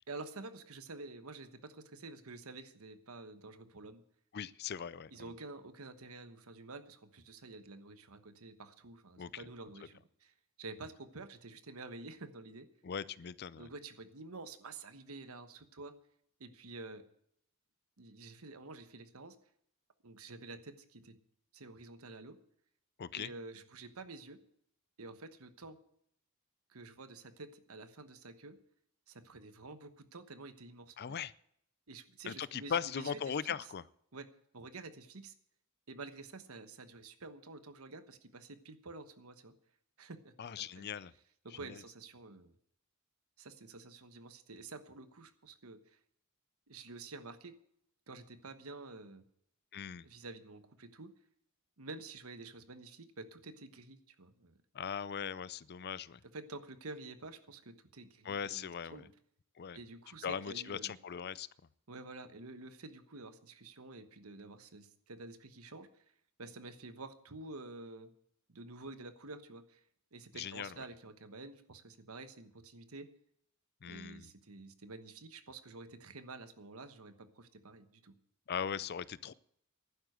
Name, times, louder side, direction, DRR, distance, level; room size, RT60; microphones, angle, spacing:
voice 1, 0.1-4.0 5.1-12.7 13.6-15.9 16.4-17.0 18.0-19.4 20.0-21.2 21.5-22.4 23.1-24.4 25.0-25.8 26.7-28.6 29.1-31.2 31.9-33.3 34.1-34.3 34.5-35.3 35.9-39.5 40.0-40.9 41.4-42.5 43.4-46.0 46.7-47.6 48.1-49.2 50.0-51.1 51.8-54.6 56.3-59.1 59.7-60.9 61.9-66.0 66.4-68.1 68.5-69.8 70.1-73.1 73.8-78.1, right 3 dB, 85° right, 10 dB, 1.2 m, -49 dB
voice 2, 4.3-5.3 9.2-9.5 12.8-13.7 23.0-23.3 31.0-31.3 32.3-33.8 40.4-41.1 41.5-41.8 49.7-50.1 54.7-56.2 58.2-59.1 59.6-59.8 60.2-61.5 70.3-70.9 73.8-74.3 78.5-79.3, left 7 dB, 50° left, 19 dB, 0.5 m, -39 dB
11.5 x 9.8 x 7.9 m, 0.71 s
head